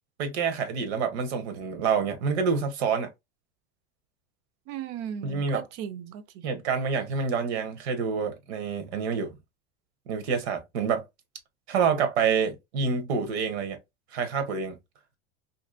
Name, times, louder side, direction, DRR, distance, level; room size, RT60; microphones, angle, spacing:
voice 1, 0.2-3.1 5.2-5.7 6.4-9.4 10.1-11.0 11.7-13.8 14.1-14.8, right 6 dB, 85° right, 0.9 m, -27 dB
voice 2, 4.7-6.4, right 9 dB, 55° right, 0.5 m, -37 dB
2.7 x 2.6 x 2.4 m
supercardioid pair, 120°, 32 cm